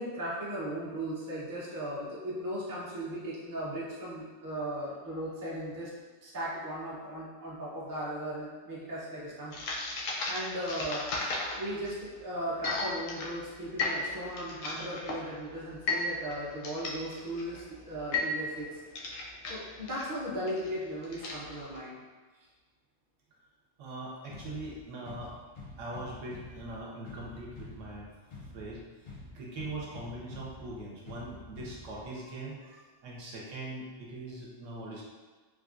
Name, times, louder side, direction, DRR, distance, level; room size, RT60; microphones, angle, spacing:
voice 1, 0.0-5.9 6.2-9.5 10.3-18.8 19.5-22.0, equal, 25° right, -7 dB, 0.4 m, -37 dB
sound 1, 9.5-21.8, left 3 dB, 80° left, 0.9 m, -36 dB
voice 2, 23.8-25.3 25.8-28.1 28.5-35.0, right 2 dB, 80° right, -3 dB, 1.0 m, -41 dB
sound 2, 24.3-32.3, left 2 dB, 55° left, 0.6 m, -48 dB
3.3 x 2.3 x 2.4 m, 1.4 s
omnidirectional pair, 1.3 m